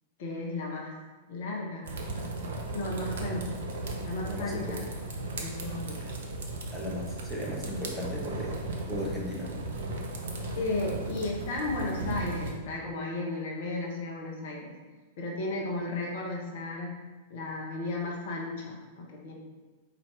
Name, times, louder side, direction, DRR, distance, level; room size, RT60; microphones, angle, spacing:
voice 1, 0.2-0.9 1.3-1.9 2.2-3.6 4.0-4.8 5.4-6.1 10.6-14.7 15.2-16.9 17.3-19.3, left 2 dB, 55° left, -1 dB, 0.8 m, -34 dB
sound 1, 1.8-12.5, right 2 dB, 60° right, 0.7 m, -36 dB
voice 2, 4.2-4.7 6.7-8.5 8.9-9.6, left 1 dB, 5° left, -5 dB, 1.0 m, -36 dB
4.3 x 2.6 x 4.4 m, 1.3 s
figure-of-eight pair, 95°, 0 cm